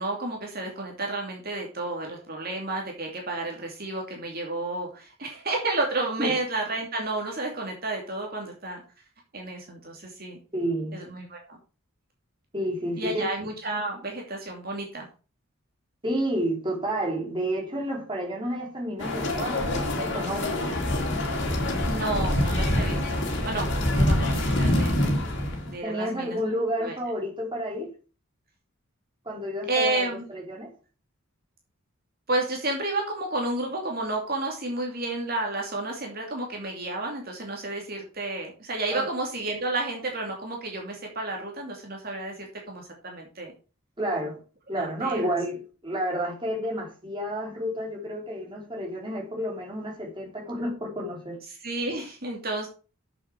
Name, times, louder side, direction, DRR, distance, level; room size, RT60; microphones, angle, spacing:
voice 1, 0.0-8.8 9.3-10.4 10.9-11.6 13.0-15.1 21.9-25.0 25.7-26.4 26.8-26.9 29.7-30.3 32.3-43.5 44.8-45.3 51.6-52.7, right 2 dB, 45° right, 2.7 m, -31 dB
voice 2, 10.5-11.0 12.5-13.3 16.0-20.7 25.8-27.9 29.2-30.7 38.9-39.1 44.0-44.4 44.7-51.4, equal, 20° right, 3.3 m, -30 dB
sound 1, 19.0-25.7, left 1 dB, 55° left, 3.0 m, -25 dB
8.2 x 7.3 x 6.3 m
head